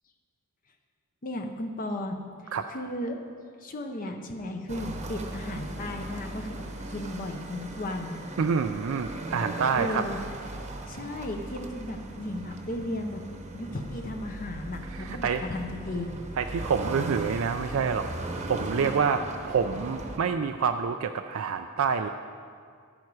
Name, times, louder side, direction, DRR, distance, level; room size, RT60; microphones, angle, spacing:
voice 1, 1.2-3.2 3.6-6.6 6.9-8.2 9.8-10.2 10.9-13.2 13.5-16.2, left 1 dB, 40° left, 4 dB, 0.7 m, -35 dB
sound 1, 4.7-20.2, right 2 dB, 30° right, 0.9 m, -38 dB
voice 2, 8.4-10.1 14.9-15.4 16.4-18.1 18.5-22.1, right 6 dB, 65° right, 6 dB, 0.4 m, -27 dB
11.0 x 8.9 x 4.8 m, 2.2 s
head